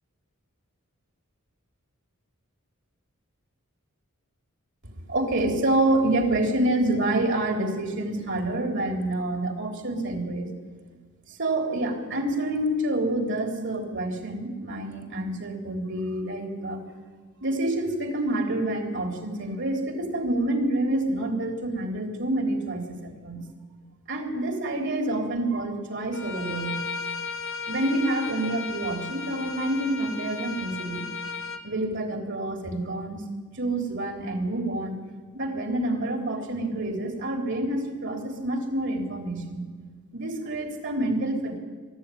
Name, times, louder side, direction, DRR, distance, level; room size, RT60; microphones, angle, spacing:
voice 1, 5.1-10.5 11.3-16.8 17.4-23.4 24.1-26.8 27.7-31.1 31.6-33.2 33.5-35.0 35.3-39.6 40.1-41.6, right 1 dB, 55° right, 4 dB, 3.6 m, -27 dB
Bowed string instrument, 26.1-31.6, left 5 dB, 65° left, 1.9 m, -35 dB
23.5 x 13.0 x 9.9 m, 1.5 s
head